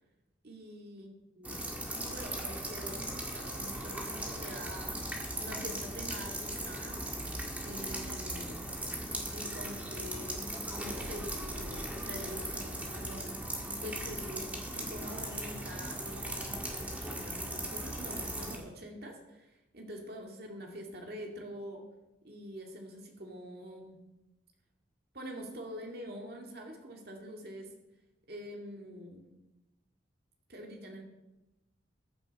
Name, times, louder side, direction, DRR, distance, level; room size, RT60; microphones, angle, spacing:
voice 1, 0.4-1.6 2.0-5.0 5.4-7.0 7.6-8.7 9.3-10.4 10.7-13.2 13.8-14.5 14.7-21.8 22.2-24.0 25.1-27.7 28.3-29.2 30.5-31.0, equal, 55° right, 2 dB, 2.2 m, -45 dB
sound 1, 1.4-18.6, right 1 dB, 10° right, 1.8 m, -38 dB
14.5 x 9.8 x 4.2 m, 0.99 s
head